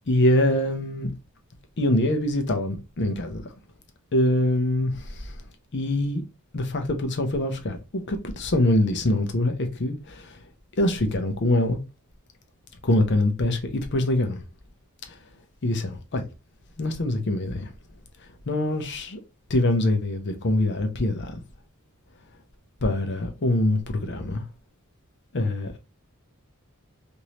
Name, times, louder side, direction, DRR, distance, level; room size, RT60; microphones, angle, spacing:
voice 1, 0.1-1.1 1.8-3.4 4.1-5.3 5.7-6.2 6.5-7.8 8.1-10.4 10.8-11.8 12.8-14.4 15.6-16.2 16.8-17.7 18.5-18.8 19.5-21.4 22.8-24.4 25.3-25.8, left 1 dB, 55° left, 0.7 m, -24 dB
3.1 x 2.7 x 2.7 m
head